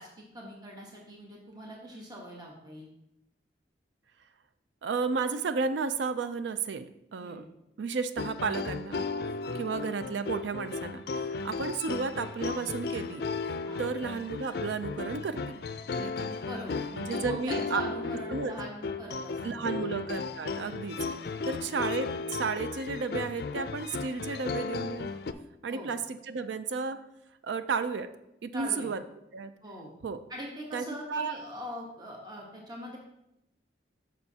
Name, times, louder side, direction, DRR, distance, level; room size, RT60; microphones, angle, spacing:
voice 1, 0.0-2.9 7.2-7.4 9.4-9.6 13.7-13.8 16.1-19.9 20.6-20.8 21.4-21.5 25.7-25.9 28.5-28.9 29.6-29.9 30.3-33.0, equal, 25° right, -1 dB, 1.1 m, -42 dB
voice 2, 4.8-7.5 7.8-9.0 9.5-13.2 13.8-15.6 16.0-16.3 17.0-17.8 18.3-18.5 19.4-21.0 21.5-25.1 25.6-27.0 27.4-28.1 28.4-29.0 29.3-29.5 30.0-30.2 30.7-31.4, right 5 dB, 90° right, 11 dB, 0.4 m, -33 dB
sound 1, 8.2-25.3, left 4 dB, 60° left, 0.4 m, -35 dB
8.8 x 6.2 x 2.8 m, 0.84 s
head